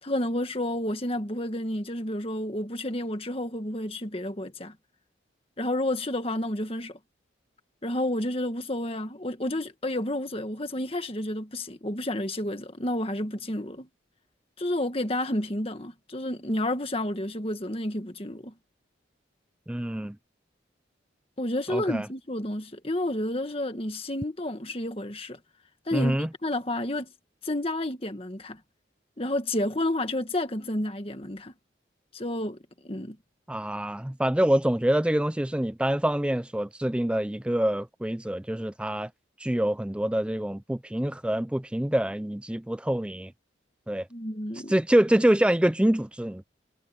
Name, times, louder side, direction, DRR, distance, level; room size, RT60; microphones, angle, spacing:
voice 1, 0.0-4.8 5.6-7.0 7.8-13.9 14.6-18.5 21.4-25.4 25.9-27.1 27.4-28.6 29.2-31.5 32.1-32.6 32.8-33.2 44.1-44.7, left 1 dB, 30° left, 1.8 m, -30 dB
voice 2, 19.7-20.2 21.7-22.1 25.9-26.3 33.5-39.1 39.4-43.3 43.9-44.1 44.7-46.4, right 1 dB, 5° right, 0.4 m, -25 dB
head